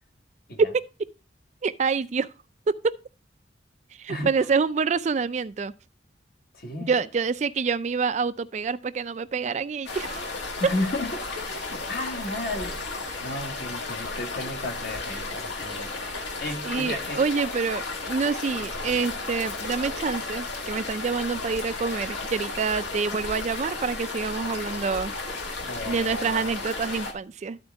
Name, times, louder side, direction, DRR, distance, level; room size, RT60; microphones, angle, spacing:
voice 1, 0.6-1.1 1.6-2.3 2.7-3.0 3.9-5.7 6.9-10.3 10.6-10.7 16.6-25.4 25.9-27.6, right 5 dB, 40° right, 0.3 m, -27 dB
voice 2, 6.5-6.9 10.6-12.8 13.2-15.9 16.4-17.2 18.7-18.9 25.6-26.5, left 2 dB, 55° left, 1.4 m, -33 dB
sound 1, 9.8-27.1, left 3 dB, 75° left, 1.7 m, -34 dB
13.0 x 4.4 x 3.4 m
head